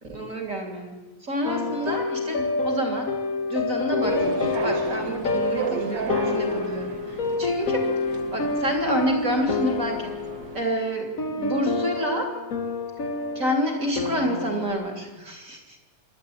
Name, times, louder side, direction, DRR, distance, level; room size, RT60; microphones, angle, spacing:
voice 1, 0.1-3.1 3.5-7.9 8.3-10.1 10.5-12.3 13.3-15.8, equal, 25° right, 2 dB, 3.4 m, -28 dB
sound 1, 1.4-14.7, left 3 dB, 50° left, 1.0 m, -28 dB
sound 2, 4.0-10.6, right 8 dB, 65° right, 1.1 m, -35 dB
26.5 x 11.5 x 9.0 m, 1.2 s
omnidirectional pair, 3.4 m